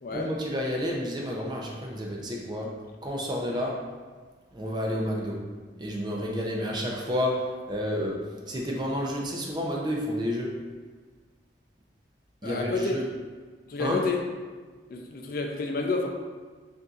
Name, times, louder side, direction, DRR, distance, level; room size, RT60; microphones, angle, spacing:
voice 1, 0.1-2.7 3.0-3.9 4.5-5.4 5.8-8.2 8.5-10.5 12.4-13.1 13.8-14.1, equal, 25° right, -2 dB, 0.5 m, -30 dB
voice 2, 12.4-12.9 13.7-14.2 14.9-16.1, left 3 dB, 50° left, 2 dB, 0.4 m, -29 dB
6.6 x 2.6 x 2.4 m, 1.4 s
head